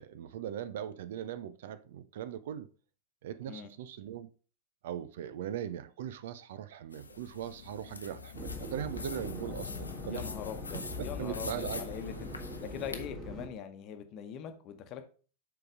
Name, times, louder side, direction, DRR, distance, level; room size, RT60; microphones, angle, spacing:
voice 1, 0.0-2.7 3.2-4.3 4.8-10.2 10.7-11.8, right 10 dB, 55° right, 0.4 m, -40 dB
sound 1, 6.9-13.0, left 3 dB, 80° left, 0.7 m, -46 dB
sound 2, 7.0-12.6, left 14 dB, 55° left, 0.3 m, -49 dB
sound 3, 8.3-13.5, left 1 dB, 20° right, 1.7 m, -42 dB
voice 2, 10.1-12.3 12.6-15.0, left 8 dB, 35° left, 1.0 m, -42 dB
6.6 x 4.0 x 4.7 m
figure-of-eight pair, 90°, 0 cm